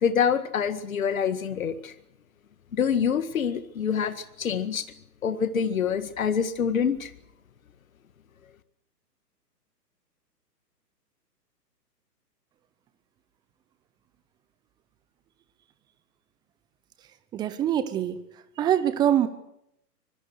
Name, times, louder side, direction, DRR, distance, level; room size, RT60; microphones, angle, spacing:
voice 1, 0.0-1.9 2.7-4.9 5.2-7.1, left 7 dB, 55° left, 12 dB, 2.0 m, -26 dB
voice 2, 17.3-18.2 18.6-19.3, right 10 dB, 10° right, 13 dB, 0.8 m, -24 dB
25.0 x 21.0 x 6.5 m, 0.77 s
figure-of-eight pair, 125°, 49 cm